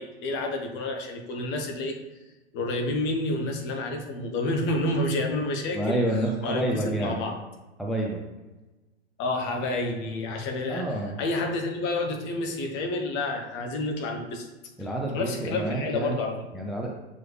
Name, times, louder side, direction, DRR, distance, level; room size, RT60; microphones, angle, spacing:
voice 1, 0.0-2.0 2.5-6.0 6.4-7.4 9.2-10.9 11.2-14.5 15.1-16.4, left 2 dB, 35° left, 3 dB, 1.1 m, -29 dB
voice 2, 5.7-7.2 7.8-8.2 10.7-11.2 14.8-16.3 16.5-16.9, right 1 dB, ahead, -1 dB, 0.6 m, -28 dB
6.3 x 4.7 x 3.4 m, 1.1 s
figure-of-eight pair, 100°, 33 cm